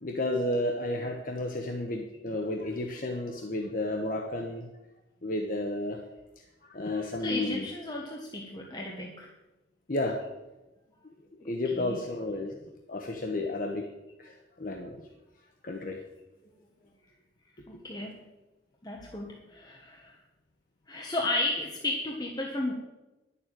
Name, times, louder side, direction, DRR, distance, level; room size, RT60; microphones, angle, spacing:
voice 1, 0.0-4.7 5.2-6.0 6.7-7.6 9.9-10.2 11.4-12.5 12.9-13.8 14.2-15.0 15.6-16.0, left 1 dB, 50° left, 2 dB, 1.1 m, -32 dB
voice 2, 6.8-9.3 11.4-12.0 16.4-16.5 17.7-18.3 18.8-20.1 20.9-22.7, left 2 dB, 20° left, -1 dB, 1.3 m, -34 dB
10.5 x 7.1 x 9.0 m, 1.0 s
head